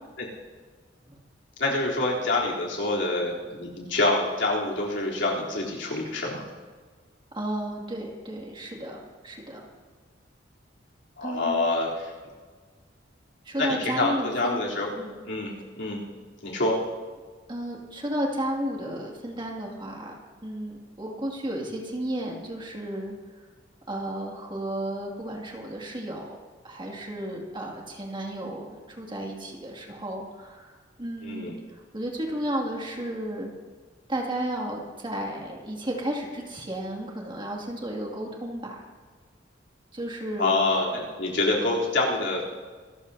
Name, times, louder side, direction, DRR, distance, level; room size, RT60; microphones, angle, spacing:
voice 1, 1.6-6.5 11.2-12.1 13.6-14.9 15.2-15.5 15.8-16.0 16.4-16.8 31.2-31.5 40.4-42.4, left 2 dB, 70° left, -4 dB, 3.5 m, -26 dB
voice 2, 7.3-9.7 11.2-11.7 13.4-14.6 15.0-15.2 17.5-23.5 23.9-26.4 26.6-33.5 34.1-38.8 39.9-40.6, right 1 dB, 25° right, -1 dB, 2.4 m, -33 dB
26.5 x 14.0 x 2.8 m, 1.5 s
head